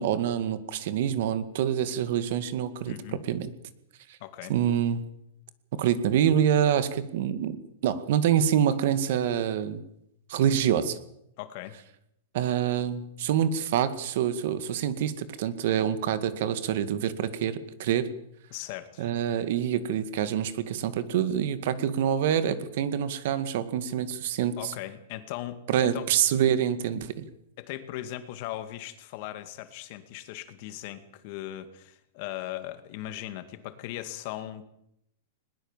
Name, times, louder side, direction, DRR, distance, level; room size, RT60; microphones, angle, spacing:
voice 1, 0.0-3.5 4.5-5.0 5.7-9.8 10.3-11.0 12.3-18.1 19.0-24.7 25.7-27.2, right 9 dB, 55° right, 13 dB, 2.0 m, -26 dB
voice 2, 2.9-3.2 4.2-4.5 11.4-11.8 18.5-19.1 24.6-26.1 27.6-34.6, left 14 dB, 45° left, 10 dB, 2.1 m, -38 dB
21.0 x 20.0 x 7.4 m, 0.77 s
supercardioid pair, 160°, 0 cm